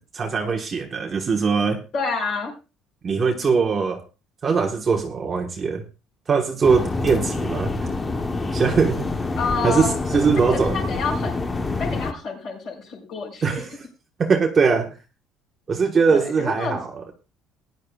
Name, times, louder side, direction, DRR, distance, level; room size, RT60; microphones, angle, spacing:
voice 1, 0.1-1.8 3.0-4.0 4.4-5.8 6.3-8.0 8.5-9.1 9.6-10.8 13.4-13.9 14.2-14.9 15.7-17.1, right 5 dB, 25° right, 1.2 m, -21 dB
voice 2, 1.9-2.5 9.4-9.9 10.2-11.4 11.8-13.5 16.1-16.8, left 4 dB, 50° left, 4.7 m, -28 dB
sound 1, 6.6-12.1, left 3 dB, 15° left, 0.9 m, -26 dB
19.5 x 10.5 x 2.3 m
cardioid pair, 165°, 0 cm